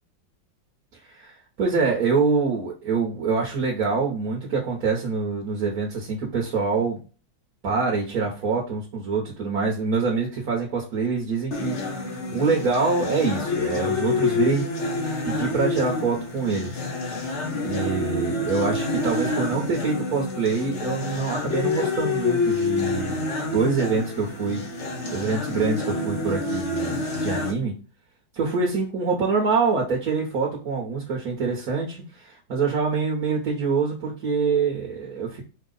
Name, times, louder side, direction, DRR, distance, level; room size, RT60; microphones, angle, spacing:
voice 1, 1.1-7.0 7.6-14.7 15.2-16.9 17.6-24.6 25.1-27.7 28.3-35.4, right 4 dB, 50° right, -2 dB, 1.5 m, -25 dB
sound 1, 11.5-27.5, left 3 dB, 45° left, 1.1 m, -27 dB
5.5 x 2.4 x 3.9 m, 0.33 s
omnidirectional pair, 2.2 m